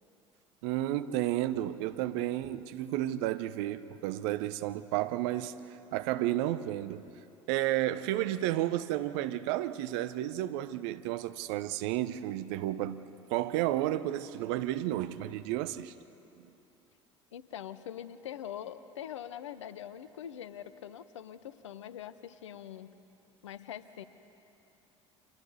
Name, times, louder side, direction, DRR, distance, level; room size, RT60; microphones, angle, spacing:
voice 1, 0.6-5.5 5.9-7.0 7.5-13.0 13.3-15.9 16.4-16.5, right 14 dB, 65° right, 0.8 m, -32 dB
voice 2, 17.3-22.9 23.4-24.0, left 10 dB, 80° left, 0.8 m, -43 dB
29.0 x 27.0 x 4.2 m
figure-of-eight pair, 65°, 15 cm